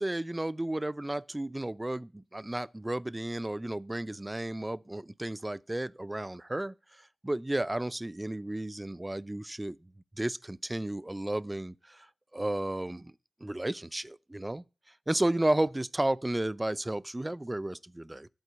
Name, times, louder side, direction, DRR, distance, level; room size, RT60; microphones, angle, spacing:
voice 1, 0.0-9.9 10.2-12.1 12.3-13.1 13.4-14.6 15.1-18.3, right 1 dB, 20° right, 0.4 m, -33 dB
11.0 x 4.3 x 8.0 m
cardioid pair, 45°, 0 cm